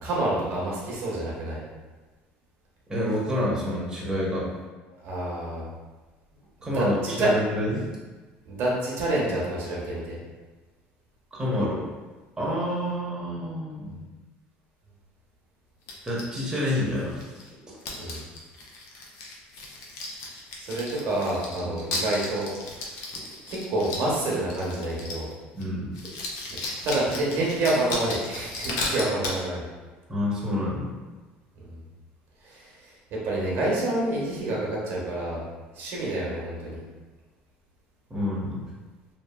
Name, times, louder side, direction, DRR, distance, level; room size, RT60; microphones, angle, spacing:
voice 1, 0.0-1.6 5.0-5.7 6.6-7.3 8.5-10.2 18.0-18.2 20.6-22.9 23.5-25.3 26.5-26.6 26.8-29.6 31.6-31.8 32.4-35.4 35.7-36.8, right 1 dB, 65° right, -4 dB, 0.9 m, -28 dB
voice 2, 2.9-4.5 6.6-7.8 11.3-11.8 12.4-14.1 16.0-17.3 21.6-21.7 25.5-26.2 30.1-30.9 38.1-38.6, left 1 dB, 15° right, -5 dB, 0.8 m, -28 dB
sound 1, 15.9-17.5 17.8-25.3 25.6-25.7 25.9-29.4, left 2 dB, 80° left, 0.6 m, -35 dB
2.8 x 2.5 x 2.3 m, 1.3 s
supercardioid pair, 90°, 4 cm